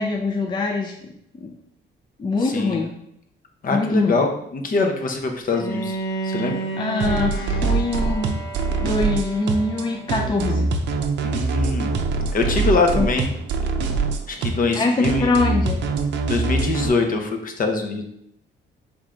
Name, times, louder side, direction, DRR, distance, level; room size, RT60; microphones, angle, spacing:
voice 1, 0.0-1.5 2.2-3.0 3.7-4.2 6.8-8.3 8.7-10.7 13.0-13.1 14.7-15.8, left 3 dB, 25° left, 2 dB, 0.4 m, -23 dB
voice 2, 3.6-6.0 6.2-6.6 11.2-11.9 12.3-13.3 14.3-15.3 16.3-18.0, left 3 dB, 45° left, 4 dB, 0.7 m, -23 dB
Bowed string instrument, 5.5-10.5, right 1 dB, 80° left, 0.8 m, -32 dB
sound 1, 7.0-16.9, right 4 dB, 65° right, 0.5 m, -23 dB
3.6 x 3.1 x 3.7 m, 0.74 s
cardioid pair, 90°, 20 cm